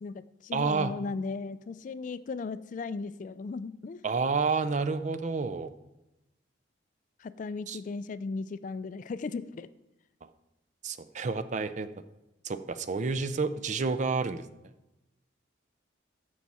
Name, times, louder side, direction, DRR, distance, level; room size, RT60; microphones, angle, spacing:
voice 1, 0.0-4.0 7.2-9.7, left 4 dB, 40° left, 15 dB, 0.3 m, -36 dB
voice 2, 0.5-0.9 4.0-5.7 7.7-7.8 10.8-11.9 12.4-14.4, right 4 dB, 40° right, 11 dB, 0.4 m, -29 dB
13.0 x 4.7 x 4.2 m, 0.97 s
head